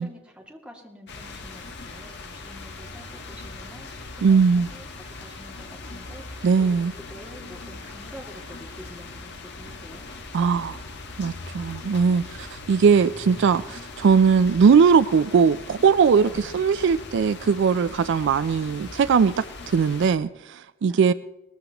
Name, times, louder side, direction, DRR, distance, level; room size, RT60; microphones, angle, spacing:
voice 1, 0.0-4.8 5.2-10.8 16.2-16.6 20.9-21.1, equal, 5° right, -1 dB, 2.2 m, -47 dB
sound 1, 1.1-20.2, left 3 dB, 60° left, 1.5 m, -40 dB
voice 2, 4.2-4.7 6.4-6.9 10.3-10.7 11.2-21.1, right 6 dB, 65° right, 15 dB, 0.4 m, -20 dB
19.5 x 14.5 x 3.0 m, 0.95 s
head